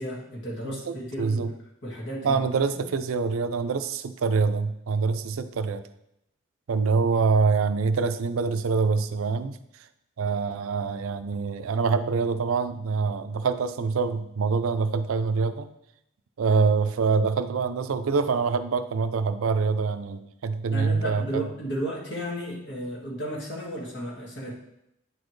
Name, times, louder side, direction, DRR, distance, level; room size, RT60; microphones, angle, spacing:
voice 1, 0.0-1.5 1.8-2.4 2.7-2.8 20.7-24.6, right 1 dB, 55° left, -3 dB, 1.7 m, -33 dB
voice 2, 0.6-1.5 2.2-5.9 6.7-9.9 10.2-15.7 16.4-21.4, right 4 dB, 90° right, 11 dB, 0.4 m, -25 dB
9.1 x 4.2 x 3.2 m, 0.80 s
head